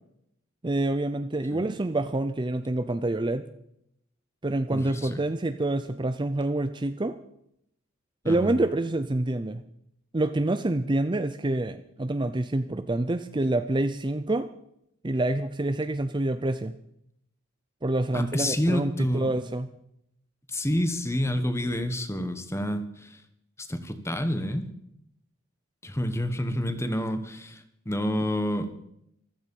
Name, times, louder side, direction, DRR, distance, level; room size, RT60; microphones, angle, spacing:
voice 1, 0.6-3.5 4.4-7.2 8.2-9.6 10.1-14.5 15.0-16.7 17.8-19.7, right 2 dB, 20° right, 10 dB, 0.6 m, -27 dB
voice 2, 4.7-5.2 8.2-8.5 18.1-19.3 20.5-23.2 23.6-24.7 25.8-28.9, equal, 15° left, 9 dB, 1.3 m, -29 dB
15.0 x 13.5 x 5.5 m, 0.76 s
head